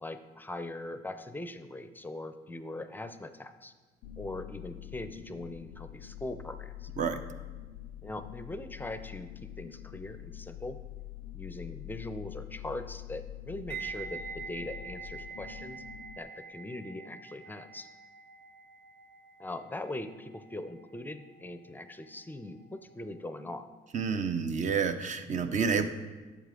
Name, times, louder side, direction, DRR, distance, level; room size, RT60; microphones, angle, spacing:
voice 1, 0.0-3.7 4.2-6.9 8.0-10.8 11.3-15.8 16.2-17.9 19.4-23.7, left 2 dB, 10° left, 10 dB, 0.5 m, -41 dB
sound 1, 4.0-16.2, left 13 dB, 90° left, 0.4 m, -45 dB
sound 2, 13.7-22.7 22.9-23.2, right 6 dB, 70° right, 1.5 m, -46 dB
voice 2, 23.9-25.9, right 6 dB, 45° right, 9 dB, 0.7 m, -29 dB
11.0 x 7.4 x 3.8 m, 1.3 s
cardioid pair, 110°, 17 cm